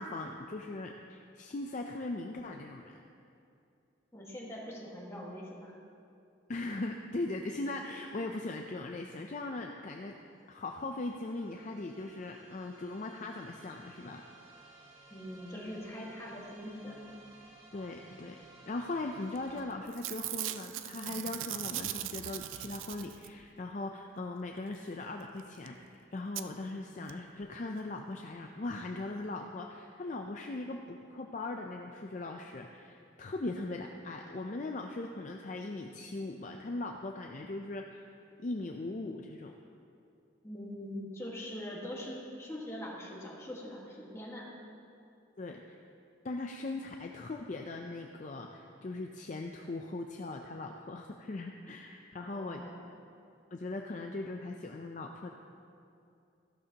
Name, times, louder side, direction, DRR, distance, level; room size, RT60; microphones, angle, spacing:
voice 1, 0.0-3.0 6.5-10.2 10.5-14.2 17.7-18.4 18.7-37.9 38.4-39.6 45.4-45.8 46.2-52.7 53.5-55.3, left 2 dB, 40° left, 2 dB, 0.4 m, -39 dB
voice 2, 4.1-5.7 15.1-17.0 40.4-44.5 52.2-52.9, equal, 15° left, -4 dB, 1.6 m, -43 dB
sound 1, 9.8-19.7, right 2 dB, 20° right, 1.6 m, -57 dB
Packing tape duct tape / Tearing, 19.4-19.6 19.9-23.5 25.4-25.5 25.7-25.8 26.4-26.5 27.1-27.2 27.4-27.5, right 13 dB, 85° right, 0.4 m, -39 dB
14.5 x 12.0 x 2.9 m, 2.6 s
head